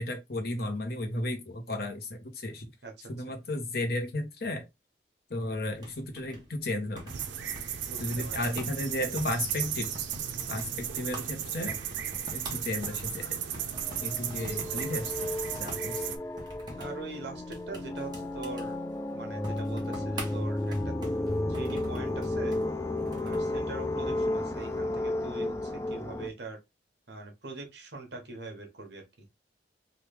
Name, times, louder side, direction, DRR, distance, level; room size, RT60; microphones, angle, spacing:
voice 1, 0.0-2.7 3.1-4.6 5.3-7.0 8.0-9.9 10.5-11.8 12.3-13.4 14.0-16.2, left 1 dB, 55° left, 0.8 m, -34 dB
voice 2, 2.8-3.3 7.8-8.4 14.2-15.1 16.8-18.8 19.1-20.9 21.5-22.6 23.2-26.6 27.1-29.3, right 3 dB, 65° right, 1.0 m, -43 dB
sound 1, 5.7-23.5, right 1 dB, 25° right, 0.9 m, -46 dB
sound 2, 7.1-16.2, right 9 dB, 85° right, 0.5 m, -35 dB
sound 3, 13.7-26.3, left 1 dB, 15° left, 0.3 m, -33 dB
3.1 x 2.3 x 3.2 m
head